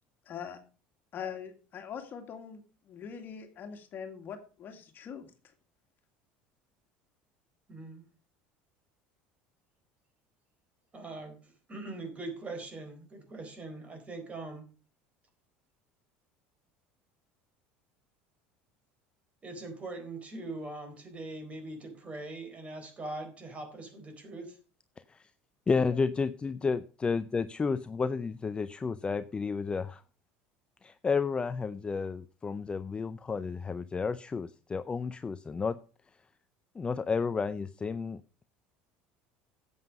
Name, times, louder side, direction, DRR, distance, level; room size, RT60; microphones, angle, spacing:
voice 1, 0.3-0.6 1.1-5.3 25.7-26.0 26.6-26.7, left 7 dB, 45° left, 6 dB, 2.0 m, -42 dB
voice 2, 7.7-8.0 10.9-11.4 11.7-14.7 19.4-24.6, right 2 dB, 30° right, 6 dB, 4.2 m, -41 dB
voice 3, 25.7-30.0 30.8-35.8 36.8-38.2, left 5 dB, 20° left, 13 dB, 0.5 m, -31 dB
11.0 x 8.0 x 5.3 m, 0.36 s
supercardioid pair, 100°, 5 cm